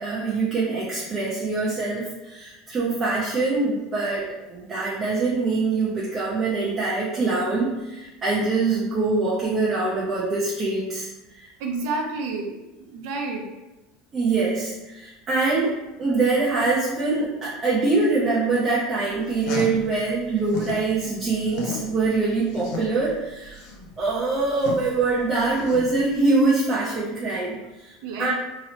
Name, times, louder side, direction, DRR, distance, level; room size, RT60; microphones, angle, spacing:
voice 1, 0.0-11.4 14.1-15.7 16.0-23.6 24.0-27.9 28.2-28.3, right 3 dB, 25° right, -7 dB, 0.6 m, -24 dB
voice 2, 11.6-12.5 12.9-13.4 28.0-28.3, right 3 dB, 65° right, 0 dB, 0.7 m, -29 dB
sound 1, 19.1-20.9 21.2-26.2, left 4 dB, 55° left, 0.6 m, -35 dB
3.0 x 2.8 x 2.9 m, 1.0 s
cardioid pair, 160°, 0 cm